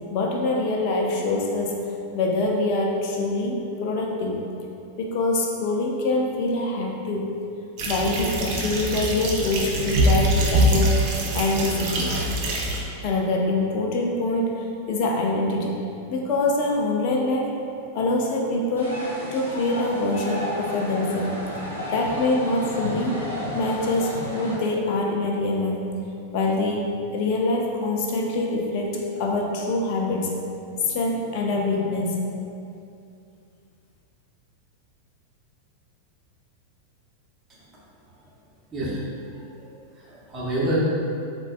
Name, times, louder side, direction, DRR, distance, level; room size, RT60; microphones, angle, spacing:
voice 1, 0.1-1.7 2.1-4.5 5.0-7.3 7.8-12.2 13.0-15.8 16.1-17.5 17.9-19.0 19.3-21.4 21.9-23.2 23.5-26.0 26.3-26.9 27.1-30.3 30.9-32.2, left 2 dB, 45° left, 0 dB, 0.3 m, -25 dB
sound 1, 7.8-12.8, right 1 dB, 45° right, 0.4 m, -23 dB
sound 2, 18.8-24.5, equal, 80° left, 0.7 m, -32 dB
voice 2, 38.7-39.0 39.4-39.7 40.0-40.8, right 1 dB, 25° right, -7 dB, 0.8 m, -27 dB
3.9 x 2.2 x 2.3 m, 2.6 s
figure-of-eight pair, 90°, 0 cm